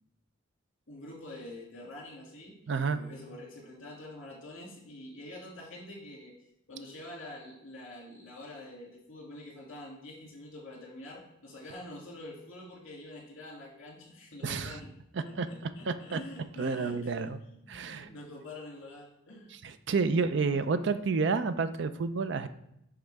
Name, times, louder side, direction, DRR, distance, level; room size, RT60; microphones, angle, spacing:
voice 1, 0.9-2.6 2.9-6.3 6.7-14.9 15.2-19.5, left 1 dB, 70° left, -2 dB, 2.3 m, -46 dB
voice 2, 2.7-3.0 14.4-14.8 15.4-15.5 15.9-16.2 16.6-17.4 17.7-18.1 19.6-22.5, right 4 dB, 60° right, 11 dB, 0.4 m, -29 dB
10.5 x 3.8 x 3.4 m, 0.80 s
head